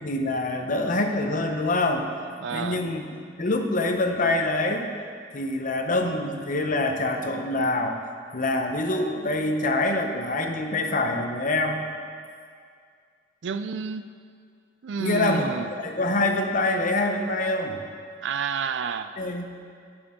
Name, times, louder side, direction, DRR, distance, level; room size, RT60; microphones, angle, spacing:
voice 1, 0.0-2.1 2.5-3.0 3.4-4.9 5.3-8.0 8.3-11.8 15.0-15.5 15.8-17.8 19.2-19.4, left 2 dB, 45° left, 4 dB, 0.8 m, -25 dB
voice 2, 2.4-2.8 13.4-14.1 14.8-15.7 18.2-19.1, right 5 dB, 75° right, 11 dB, 0.4 m, -29 dB
15.5 x 6.2 x 3.7 m, 2.2 s
head